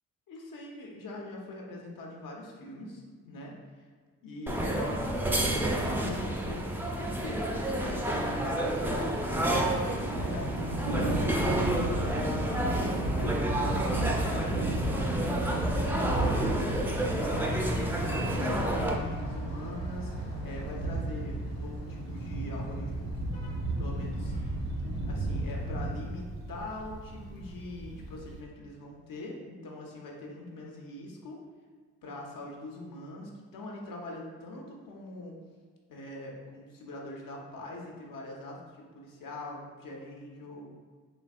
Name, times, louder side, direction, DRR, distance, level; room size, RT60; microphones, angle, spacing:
voice 1, 0.3-3.9 4.2-9.1 9.4-13.4 13.6-23.2 23.8-24.4 25.0-31.4 32.0-35.3 35.9-40.7, left 2 dB, 65° left, -1 dB, 1.0 m, -43 dB
sound 1, 4.5-18.9, right 1 dB, 5° right, 0.6 m, -30 dB
Thunder, 10.0-28.4, right 1 dB, 90° right, 0.7 m, -33 dB
Truck / Accelerating revving vroom, 11.3-25.7, left 2 dB, 80° left, 1.2 m, -46 dB
4.2 x 3.4 x 2.4 m, 1.5 s
supercardioid pair, 50°, 36 cm